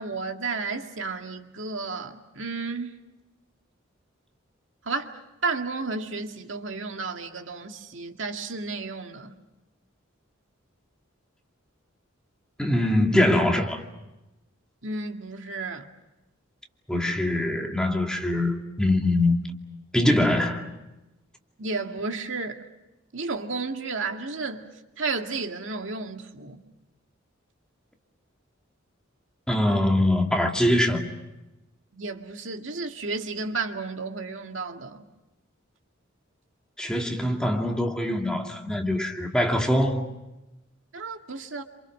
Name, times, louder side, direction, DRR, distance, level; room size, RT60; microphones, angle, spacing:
voice 1, 0.0-2.9 4.9-9.4 14.8-15.9 21.6-22.6 23.1-24.7 25.0-26.6 31.9-35.0 40.9-41.6, right 4 dB, 70° right, 2.1 m, -32 dB
voice 2, 12.6-13.8 16.9-19.4 19.9-20.7 29.5-31.1 36.8-40.0, left 1 dB, 5° left, 2.4 m, -23 dB
28.0 x 27.5 x 6.5 m
head